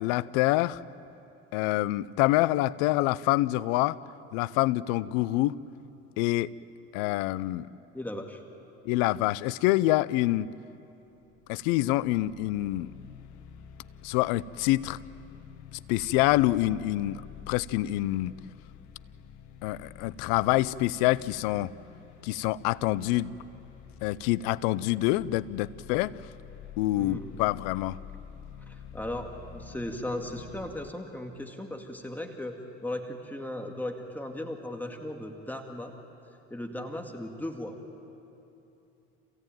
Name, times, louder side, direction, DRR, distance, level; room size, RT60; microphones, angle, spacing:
voice 1, 0.0-0.8 1.5-4.0 4.3-5.6 6.2-6.5 6.9-7.7 8.9-10.5 11.5-12.9 14.0-15.0 15.9-17.2 17.5-18.3 19.6-21.7 22.2-23.3 24.0-26.1 26.8-28.0, left 17 dB, 75° left, 19 dB, 0.6 m, -26 dB
voice 2, 7.9-8.4 26.9-27.4 28.7-35.9 36.5-37.8, left 1 dB, 5° left, 3 dB, 2.2 m, -37 dB
sound 1, 11.1-30.9, left 8 dB, 60° left, 1.5 m, -48 dB
28.0 x 16.5 x 9.1 m, 2.9 s
supercardioid pair, 80°, 33 cm